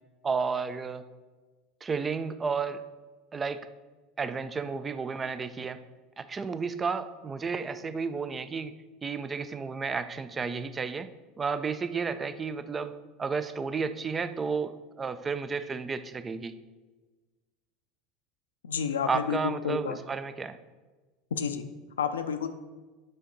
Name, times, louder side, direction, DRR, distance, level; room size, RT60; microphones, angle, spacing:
voice 1, 0.2-1.1 1.8-2.8 3.3-3.7 4.2-5.8 6.2-8.7 9.0-11.1 11.4-12.9 13.2-16.5 19.1-20.6, right 5 dB, 20° right, 13 dB, 0.4 m, -32 dB
voice 2, 18.6-19.4 19.6-20.0 21.3-21.6 22.0-22.5, left 7 dB, 75° left, 9 dB, 0.4 m, -30 dB
7.5 x 3.5 x 3.9 m, 1.3 s
figure-of-eight pair, 75°, 0 cm